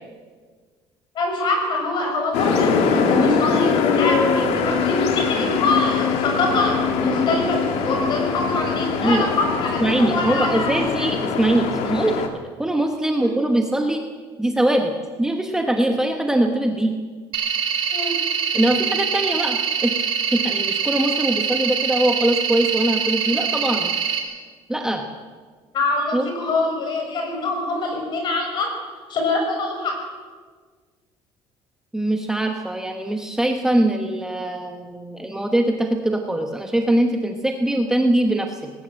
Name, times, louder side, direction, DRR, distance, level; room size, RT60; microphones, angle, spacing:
voice 1, 1.1-10.9 13.2-13.3 17.9-18.1 25.7-28.7 29.1-29.9, left 2 dB, 45° left, 2 dB, 6.5 m, -24 dB
sound 1, 2.3-12.3, left 5 dB, 80° left, 2.3 m, -22 dB
voice 2, 9.0-9.3 9.8-12.1 12.6-14.0 14.4-14.9 15.2-16.9 18.5-20.0 20.3-23.9 24.7-25.0 26.1-26.3 31.9-38.7, right 1 dB, 5° right, 3 dB, 1.2 m, -22 dB
sound 2, 17.3-24.2, right 7 dB, 55° right, 3.2 m, -24 dB
19.5 x 18.0 x 7.7 m, 1.5 s
cardioid pair, 160°, 10 cm